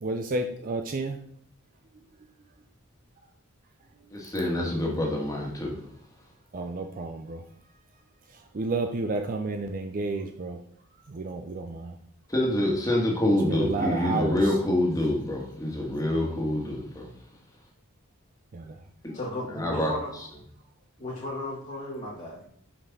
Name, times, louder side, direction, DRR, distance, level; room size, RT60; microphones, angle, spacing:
voice 1, 0.0-1.2 6.5-7.4 8.5-10.6 11.1-12.0 13.5-14.4 18.5-18.8, right 2 dB, 40° right, 5 dB, 0.4 m, -31 dB
voice 2, 4.1-5.7 12.3-17.1 19.0-19.2 19.5-20.2, left 1 dB, 15° left, -1 dB, 1.5 m, -26 dB
voice 3, 19.1-20.1 21.0-22.5, left 1 dB, 35° left, -5 dB, 1.4 m, -34 dB
5.8 x 5.3 x 4.0 m, 0.63 s
head